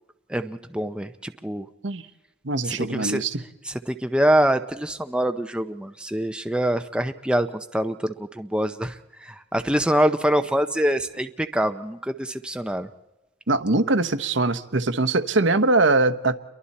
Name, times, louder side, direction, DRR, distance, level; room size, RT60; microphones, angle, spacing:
voice 1, 0.3-1.7 2.6-3.2 3.6-12.9, right 1 dB, 5° right, 7 dB, 0.7 m, -25 dB
voice 2, 2.4-3.4 13.5-16.4, right 2 dB, 60° right, 9 dB, 1.1 m, -22 dB
30.0 x 23.0 x 4.3 m, 1.0 s
head